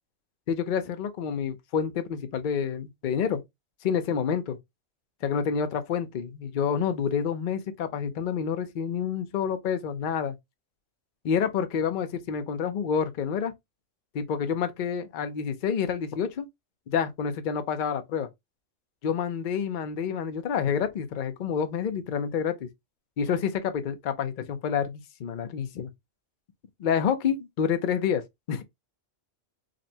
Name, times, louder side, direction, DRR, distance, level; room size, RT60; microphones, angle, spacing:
voice 1, 0.5-3.4 3.8-4.6 5.2-10.3 11.2-13.5 14.1-16.5 16.9-18.3 19.0-22.7 23.2-25.9 26.8-28.2 28.5-28.6, left 7 dB, 50° left, 0.6 m, -28 dB
5.1 x 2.2 x 2.7 m
omnidirectional pair, 1.3 m